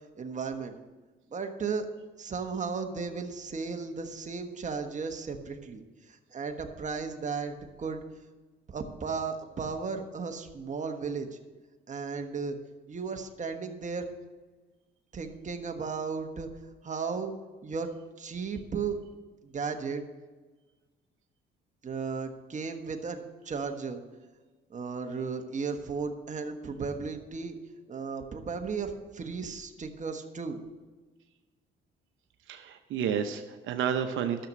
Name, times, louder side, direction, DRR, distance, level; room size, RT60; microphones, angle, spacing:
voice 1, 0.2-0.7 1.3-1.9 2.2-5.8 6.1-8.0 8.7-11.3 11.9-12.6 12.9-14.0 15.1-16.5 16.8-17.3 17.6-17.9 18.2-19.0 19.4-20.0 21.8-24.0 24.7-27.5 27.9-30.6, right 5 dB, 40° right, 5 dB, 1.3 m, -35 dB
voice 2, 32.5-34.5, right 8 dB, 80° right, 6 dB, 0.8 m, -30 dB
11.5 x 6.8 x 6.3 m, 1.3 s
cardioid pair, 90°, 20 cm